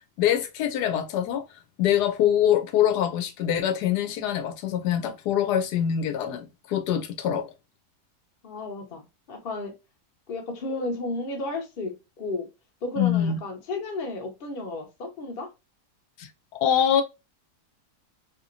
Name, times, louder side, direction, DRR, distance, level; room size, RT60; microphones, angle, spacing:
voice 1, 0.2-1.4 1.8-7.5 13.0-13.4 16.2-17.0, left 10 dB, 85° left, 1.2 m, -24 dB
voice 2, 8.4-9.8 10.3-12.5 12.8-15.5, left 2 dB, 45° left, 0.8 m, -33 dB
2.9 x 2.8 x 2.5 m
omnidirectional pair, 1.7 m